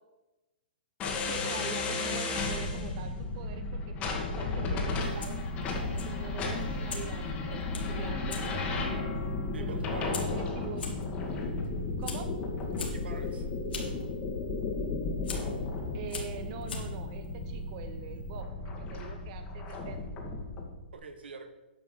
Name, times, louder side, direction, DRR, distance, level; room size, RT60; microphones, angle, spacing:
sound 1, 1.0-20.7, left 3 dB, 20° left, 1.7 m, -34 dB
voice 1, 1.3-10.9 12.0-12.3 15.9-20.0, right 7 dB, 40° right, 8 dB, 0.9 m, -44 dB
Fire, 5.0-18.4, left 4 dB, 75° left, 2.4 m, -46 dB
voice 2, 9.5-10.5 12.8-13.5 20.9-21.5, right 4 dB, 85° right, 7 dB, 1.3 m, -44 dB
9.2 x 5.8 x 6.9 m, 1.1 s
hypercardioid pair, 150°, 6 cm